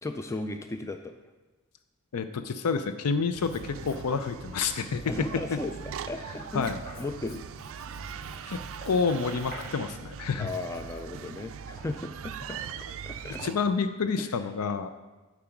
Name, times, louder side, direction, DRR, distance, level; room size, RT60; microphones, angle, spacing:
voice 1, 0.0-1.1 5.0-6.7 7.0-7.4 10.4-12.6 13.1-13.4 14.2-14.3, left 2 dB, 15° left, 6 dB, 0.3 m, -36 dB
voice 2, 2.1-5.1 5.5-5.6 6.5-6.8 8.5-8.6 8.9-10.5 13.4-14.9, left 5 dB, 85° left, 10 dB, 0.5 m, -28 dB
Writing, 3.3-11.0, left 2 dB, 60° left, 0.9 m, -53 dB
sound 1, 3.3-13.5, right 7 dB, 60° right, 0.4 m, -41 dB
Knock, 5.9-7.1 8.6-9.7 11.8-11.9 12.5-12.7 13.4-13.6, right 1 dB, 35° left, 2.2 m, -46 dB
8.7 x 4.8 x 5.9 m, 1.2 s
head